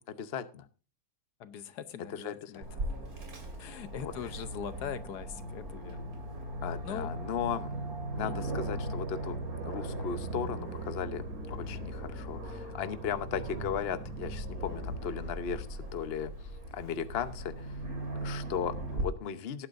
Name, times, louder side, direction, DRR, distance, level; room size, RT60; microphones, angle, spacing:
voice 1, 0.1-0.7 2.1-2.6 3.9-4.1 6.6-7.7 8.1-9.4 9.6-15.7 15.9-16.3 16.7-17.7 18.2-19.7, left 8 dB, 45° left, 12 dB, 1.0 m, -36 dB
voice 2, 1.4-2.8 3.6-6.0 6.8-7.1 8.2-8.5, left 9 dB, 85° left, 13 dB, 1.5 m, -41 dB
sound 1, 2.6-13.7, right 4 dB, ahead, 2.4 m, -54 dB
Aircraft, 2.6-19.0, right 1 dB, 65° right, 3.1 m, -38 dB
18.5 x 9.3 x 2.6 m, 0.34 s
omnidirectional pair, 1.7 m